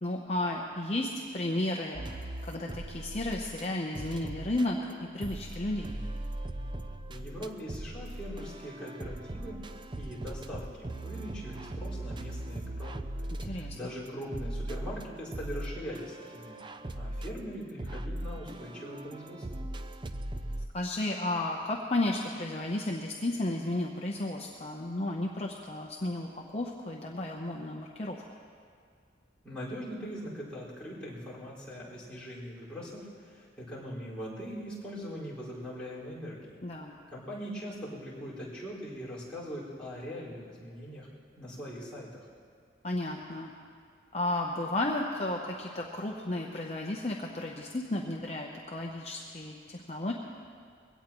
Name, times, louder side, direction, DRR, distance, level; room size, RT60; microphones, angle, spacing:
voice 1, 0.0-5.9 13.4-13.8 20.7-28.2 36.6-36.9 42.8-43.5 44.1-50.1, left 1 dB, 35° left, -1 dB, 0.8 m, -33 dB
sound 1, 1.9-3.6 3.9-20.7, right 1 dB, 25° right, 0.5 m, -39 dB
voice 2, 7.1-9.6 9.9-13.0 13.4-16.6 16.9-19.6 29.4-36.5 37.1-41.1 41.4-42.2, equal, 5° left, -10 dB, 4.9 m, -41 dB
22.5 x 17.5 x 3.1 m, 2.1 s
head